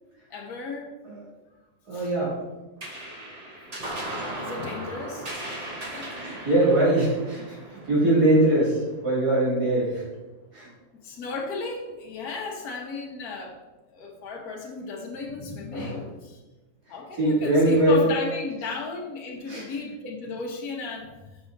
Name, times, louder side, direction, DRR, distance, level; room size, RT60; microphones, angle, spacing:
voice 1, 0.3-0.9 1.9-2.1 4.4-5.3 5.9-6.1 11.0-13.6 13.9-16.4 16.9-21.2, left 4 dB, 75° left, -1 dB, 1.5 m, -34 dB
voice 2, 1.9-2.4 6.2-10.0 10.5-10.7 15.7-16.1 17.2-18.1 19.5-19.6, right 1 dB, 80° right, -6 dB, 3.1 m, -22 dB
sound 1, 2.8-9.6, right 1 dB, 30° right, 1.0 m, -37 dB
6.2 x 6.2 x 3.9 m, 1.1 s
omnidirectional pair, 1.7 m